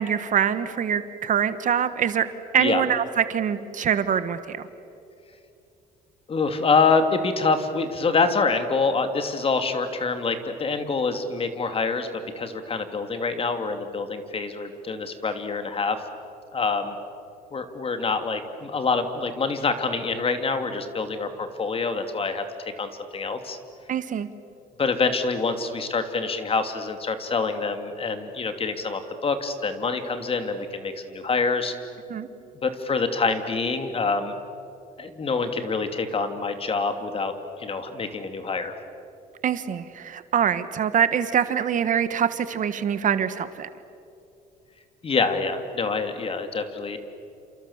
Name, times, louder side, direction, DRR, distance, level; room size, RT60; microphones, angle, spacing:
voice 1, 0.0-2.3 2.5-4.7 23.9-24.3 32.1-32.3 39.4-43.7, right 8 dB, 50° right, 12 dB, 1.3 m, -24 dB
voice 2, 6.3-12.1 12.4-16.0 16.5-17.0 17.5-23.6 24.8-31.7 32.6-34.3 35.0-38.7 45.0-47.0, left 4 dB, 35° left, 7 dB, 2.7 m, -26 dB
29.5 x 28.0 x 7.3 m, 2.6 s
cardioid pair, 110°, 17 cm